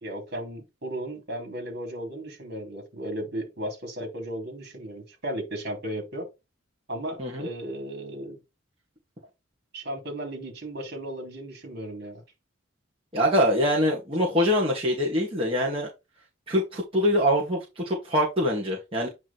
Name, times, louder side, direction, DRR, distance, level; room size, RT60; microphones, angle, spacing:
voice 1, 0.0-6.3 6.9-8.4 9.7-12.2, right 1 dB, 55° right, 3.3 m, -35 dB
voice 2, 13.1-15.9 16.5-19.1, equal, 30° right, 1.9 m, -24 dB
9.0 x 3.2 x 4.3 m
head